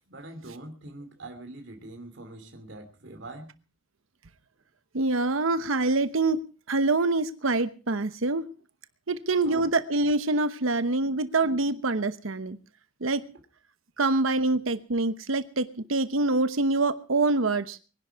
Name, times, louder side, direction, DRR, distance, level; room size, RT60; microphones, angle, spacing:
voice 1, 0.1-3.5 9.4-9.7, right 1 dB, 60° right, 5 dB, 3.0 m, -43 dB
voice 2, 4.9-6.4 6.7-8.4 9.1-12.6 13.0-13.2 14.0-17.8, right 2 dB, 90° right, 12 dB, 1.0 m, -25 dB
23.5 x 11.0 x 4.8 m, 0.36 s
head